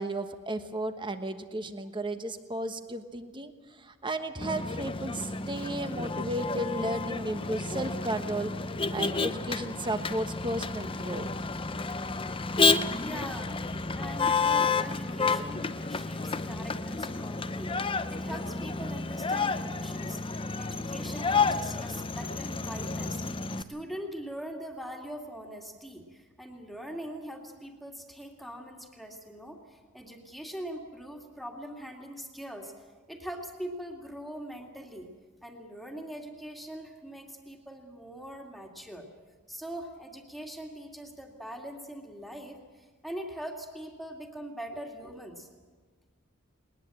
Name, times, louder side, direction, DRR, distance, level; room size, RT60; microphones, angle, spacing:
voice 1, 0.0-11.3, right 1 dB, 20° right, 8 dB, 1.2 m, -34 dB
Motor vehicle (road), 4.4-23.6, left 4 dB, 25° left, 0.7 m, -30 dB
voice 2, 12.8-20.2 20.6-35.1 35.4-39.1 39.5-45.5, equal, ahead, 1 dB, 2.3 m, -42 dB
20.5 x 20.0 x 7.8 m, 1.4 s
head